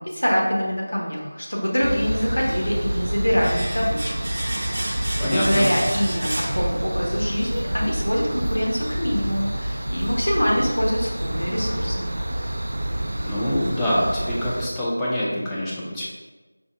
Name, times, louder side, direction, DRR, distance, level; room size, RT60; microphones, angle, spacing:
voice 1, 0.0-4.3 5.2-12.1, equal, 85° left, -3 dB, 1.3 m, -24 dB
sound 1, 1.8-14.7, right 1 dB, 75° right, 0.3 m, -28 dB
Domestic sounds home sounds, 3.4-7.2 7.5-7.6, right 1 dB, 45° right, 0.7 m, -31 dB
voice 2, 5.2-5.7 13.2-16.1, equal, 5° left, -8 dB, 0.5 m, -25 dB
5.1 x 2.3 x 3.4 m, 1.2 s
figure-of-eight pair, 175°, 0 cm